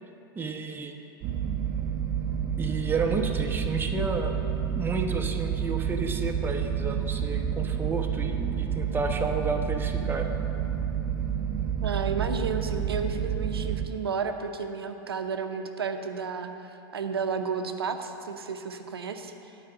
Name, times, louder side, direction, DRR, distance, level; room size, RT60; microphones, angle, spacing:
voice 1, 0.4-1.0 2.6-4.4 4.7-10.3, right 3 dB, 15° right, 3 dB, 0.9 m, -31 dB
sound 1, 1.2-13.9, right 8 dB, 40° right, 0.6 m, -29 dB
voice 2, 11.8-19.5, right 5 dB, 85° right, 6 dB, 0.7 m, -32 dB
9.8 x 5.0 x 7.3 m, 2.9 s
hypercardioid pair, 90°, 13 cm